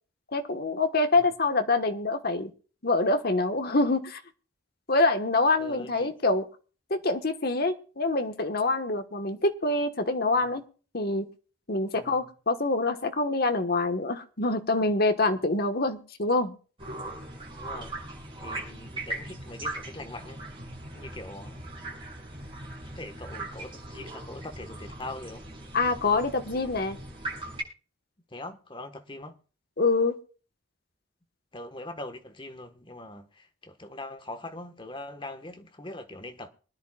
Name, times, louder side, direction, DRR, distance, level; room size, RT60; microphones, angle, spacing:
voice 1, 0.3-2.5 2.8-4.2 4.9-6.4 6.9-10.6 10.9-11.2 11.7-16.5 25.7-27.0 29.8-30.1, left 2 dB, 50° left, 1.3 m, -25 dB
voice 2, 5.6-6.1 10.4-10.5 11.9-12.3 17.6-18.0 18.4-20.6 20.9-21.6 22.9-25.4 28.3-29.4 31.5-36.5, left 2 dB, 25° left, 1.3 m, -42 dB
sound 1, 16.8-27.6, right 1 dB, 25° right, 6.6 m, -39 dB
25.0 x 10.5 x 2.4 m
head